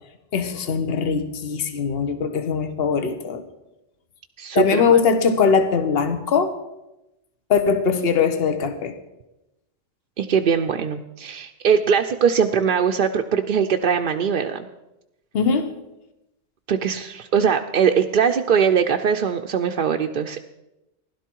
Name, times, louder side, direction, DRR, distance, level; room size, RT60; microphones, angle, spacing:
voice 1, 0.3-3.4 4.5-6.5 7.5-8.9 15.3-15.7, left 6 dB, 60° left, 9 dB, 1.3 m, -21 dB
voice 2, 4.4-5.0 10.2-14.7 16.7-20.4, right 7 dB, 55° right, 4 dB, 0.7 m, -21 dB
16.0 x 11.5 x 4.6 m, 0.95 s
omnidirectional pair, 1.2 m